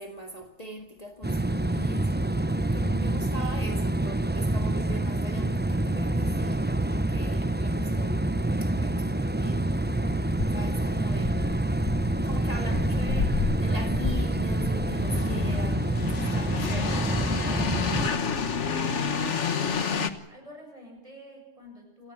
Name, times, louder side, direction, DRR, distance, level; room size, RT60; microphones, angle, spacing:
voice 1, 0.0-8.3 8.6-9.6 10.5-11.4 12.2-17.7, left 1 dB, 35° left, 3 dB, 2.2 m, -42 dB
sound 1, 1.2-18.1, right 1 dB, 10° right, 0.6 m, -27 dB
sound 2, 10.1-20.1, left 5 dB, 85° left, 1.6 m, -31 dB
voice 2, 18.6-19.9 20.3-22.1, equal, 30° right, 1 dB, 8.1 m, -48 dB
29.0 x 14.0 x 9.2 m, 0.85 s
omnidirectional pair, 1.2 m